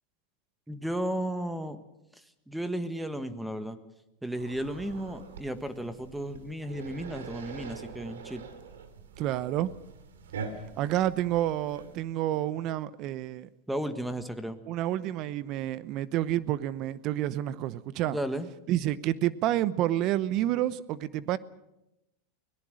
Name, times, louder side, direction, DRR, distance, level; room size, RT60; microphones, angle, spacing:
voice 1, 0.7-1.8 2.5-3.8 4.2-8.4 13.7-14.6 18.0-18.5, right 1 dB, 5° right, 1.5 m, -34 dB
sound 1, 4.3-12.0, right 5 dB, 90° right, 2.7 m, -44 dB
voice 2, 9.2-9.7 10.8-13.5 14.7-18.2 18.7-21.4, right 13 dB, 45° right, 0.8 m, -29 dB
24.0 x 18.0 x 6.4 m
hypercardioid pair, 120°, 0 cm